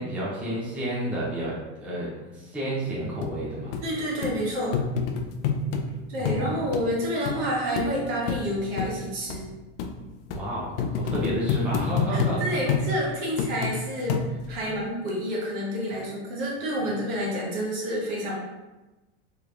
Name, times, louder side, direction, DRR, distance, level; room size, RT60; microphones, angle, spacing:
voice 1, 0.0-3.8 6.2-6.7 10.3-10.7 11.0-12.4 14.6-14.7 15.9-16.0 16.8-16.9, right 1 dB, 5° right, -8 dB, 0.6 m, -31 dB
sound 1, 3.2-3.3 3.7-3.8 4.2-4.4 4.7-5.9 6.3-6.4 6.7-6.8 7.3-7.4 7.8-7.9 8.3-8.4 8.8-8.9 9.3-9.4 9.8-9.9 10.3-10.4 10.8-12.4 12.7-12.9 13.4-13.8 14.1-14.5 15.1-15.2, left 7 dB, 60° left, 0.5 m, -27 dB
voice 2, 3.8-4.8 6.1-9.5 11.2-11.4 12.1-18.3, equal, 60° right, -3 dB, 1.2 m, -29 dB
3.3 x 3.0 x 2.5 m, 1.1 s
supercardioid pair, 145°, 33 cm